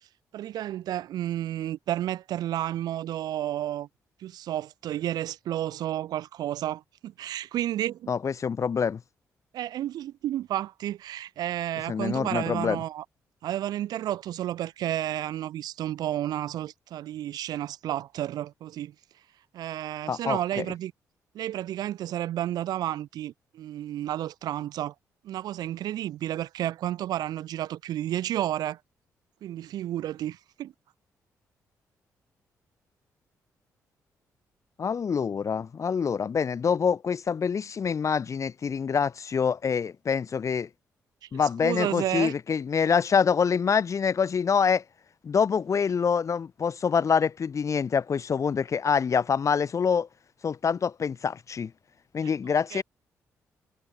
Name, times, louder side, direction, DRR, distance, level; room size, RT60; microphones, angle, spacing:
voice 1, 0.3-3.9 4.2-8.1 9.5-13.0 13.4-18.9 19.5-20.9 21.3-24.9 25.2-28.8 29.4-30.7 41.6-42.3 52.2-52.3 52.7-52.8, right 12 dB, 75° right, 1.2 m, -31 dB
voice 2, 8.1-9.0 11.9-12.8 20.1-20.6 34.8-40.7 41.3-44.8 45.2-50.1 50.4-51.7 52.1-52.8, left 6 dB, 50° left, 1.1 m, -26 dB
supercardioid pair, 50°, 7 cm